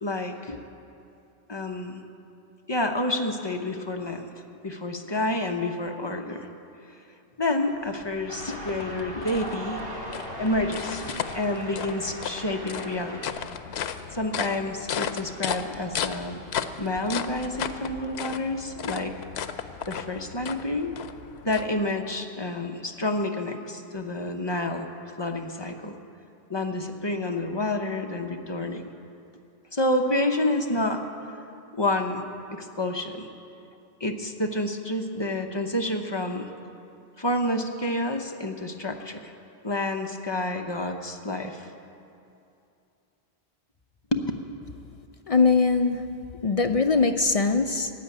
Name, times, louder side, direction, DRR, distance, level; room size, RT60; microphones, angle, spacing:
voice 1, 0.0-0.6 1.5-2.0 2.7-4.3 4.6-6.5 7.4-9.9 10.4-13.4 14.1-16.4 16.8-19.2 19.9-20.9 21.4-24.9 25.2-26.0 26.5-28.8 29.7-31.0 31.7-32.2 32.5-33.3 34.0-36.5 37.2-39.3 39.6-41.7 44.1-44.3, left 1 dB, 25° left, 4 dB, 0.8 m, -29 dB
sound 1, 7.7-22.2, left 8 dB, 85° left, 0.9 m, -35 dB
sound 2, 8.3-13.3, right 1 dB, 65° right, 2.1 m, -39 dB
voice 2, 45.3-46.0 46.4-47.9, left 4 dB, 50° left, 7 dB, 0.4 m, -21 dB
14.5 x 8.2 x 9.8 m, 2.6 s
omnidirectional pair, 1.0 m